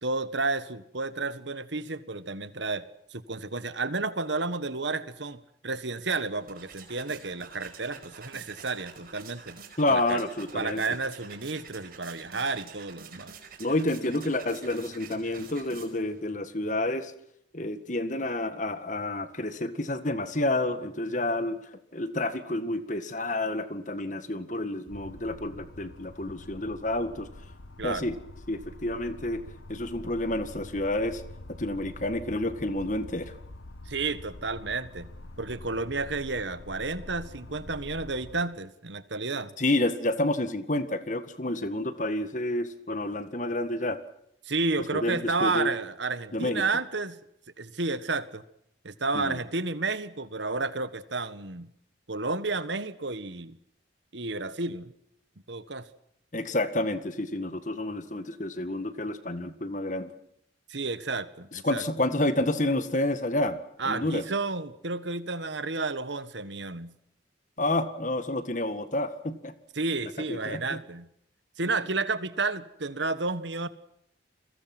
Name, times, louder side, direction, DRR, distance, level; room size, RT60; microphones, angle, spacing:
voice 1, 0.0-2.8 3.1-9.6 9.9-10.2 10.5-13.3 27.8-28.2 33.8-35.1 35.4-39.5 44.4-47.2 47.6-48.4 48.8-51.7 52.1-53.6 54.1-54.9 55.5-55.9 60.7-61.8 63.8-67.0 69.7-71.1 71.6-73.7, right 3 dB, 70° right, 13 dB, 1.6 m, -31 dB
sound 1, 6.1-16.2, right 6 dB, 50° right, 4.9 m, -48 dB
voice 2, 9.8-10.8 13.6-17.1 17.5-21.6 21.9-27.3 27.8-28.1 28.5-29.4 29.7-31.2 31.6-33.3 39.6-44.0 44.9-45.7 46.3-46.6 49.1-49.4 56.3-60.1 61.6-63.6 63.9-64.2 67.6-69.5 70.0-70.8, left 1 dB, 40° left, 11 dB, 1.9 m, -29 dB
sound 2, 24.9-38.4, left 1 dB, 75° left, 1.3 m, -45 dB
30.0 x 22.0 x 6.2 m, 0.72 s
head